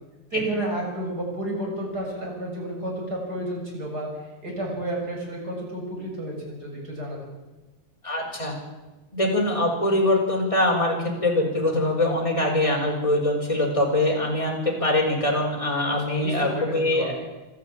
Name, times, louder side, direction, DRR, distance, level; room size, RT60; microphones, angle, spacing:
voice 1, 0.3-4.1 4.4-7.2 16.1-17.1, right 1 dB, 30° right, 0 dB, 7.2 m, -31 dB
voice 2, 8.0-8.5 9.1-17.2, left 1 dB, 10° left, -1 dB, 5.4 m, -23 dB
26.0 x 13.5 x 8.9 m, 1.1 s
omnidirectional pair, 3.4 m